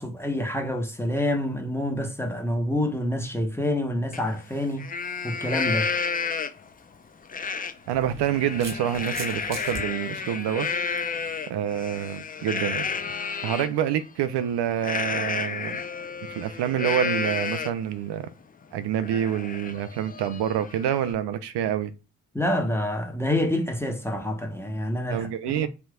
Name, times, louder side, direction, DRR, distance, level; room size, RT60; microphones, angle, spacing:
voice 1, 0.0-4.9 5.2-5.9 22.3-25.7, left 1 dB, 5° left, 0.9 m, -27 dB
Livestock farm animals working animals, 4.1-4.2 4.6-6.7 7.3-7.7 8.1-13.7 14.8-17.9 18.3-18.4 18.8-21.1, left 5 dB, 20° left, 0.4 m, -31 dB
sound 1, 6.6-6.8 7.9-9.8, right 3 dB, 35° right, 1.1 m, -38 dB
voice 2, 7.9-10.7 11.5-12.9 13.4-15.8 16.3-18.3 18.7-21.9 25.1-25.7, right 10 dB, 65° right, 0.5 m, -27 dB
3.4 x 2.8 x 2.3 m
hypercardioid pair, 45°, 44 cm